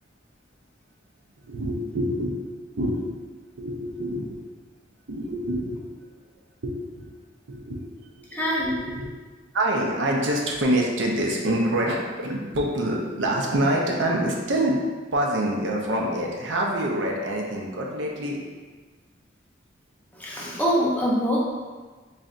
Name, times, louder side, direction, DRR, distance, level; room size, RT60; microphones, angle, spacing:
voice 1, 1.4-2.4 2.8-3.0 3.6-4.3 5.1-6.1 6.6-7.1 7.5-7.8 8.2-9.1 9.5-14.8 15.1-18.4, right 1 dB, 75° right, -1 dB, 0.6 m, -26 dB
voice 2, 8.3-8.7 20.2-21.4, equal, 10° left, -6 dB, 0.7 m, -24 dB
3.9 x 3.2 x 2.5 m, 1.4 s
head